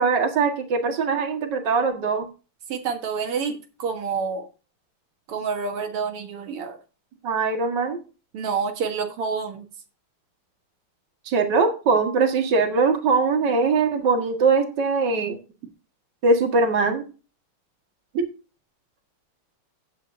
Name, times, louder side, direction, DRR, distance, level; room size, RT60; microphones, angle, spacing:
voice 1, 0.0-2.3 7.2-8.0 11.3-15.4 16.2-17.0, right 4 dB, 55° right, 5 dB, 2.3 m, -21 dB
voice 2, 2.7-4.5 5.3-6.8 8.3-9.6, right 5 dB, 85° right, 5 dB, 2.5 m, -28 dB
15.0 x 8.1 x 2.7 m, 0.34 s
omnidirectional pair, 2.4 m